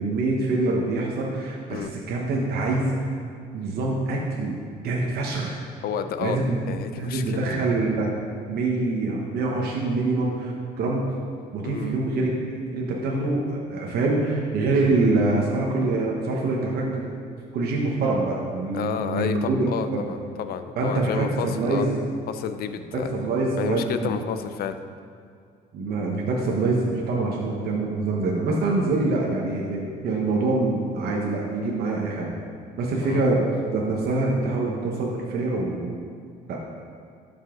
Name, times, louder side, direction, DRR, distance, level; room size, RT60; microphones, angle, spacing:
voice 1, 0.0-3.1 3.5-4.6 4.8-5.6 6.2-6.7 7.0-8.1 8.5-11.0 11.5-12.3 12.5-17.1 17.5-19.7 20.8-22.0 22.9-24.1 25.7-32.3 32.8-33.5 33.7-36.0 36.5-36.6, right 2 dB, 65° right, -2 dB, 1.2 m, -25 dB
voice 2, 5.8-6.4 6.7-7.4 11.6-12.0 18.7-21.9 22.3-23.1 23.6-24.8 33.0-33.3, left 8 dB, 65° left, 10 dB, 0.6 m, -30 dB
11.5 x 5.6 x 3.8 m, 2.3 s
cardioid pair, 110°, 17 cm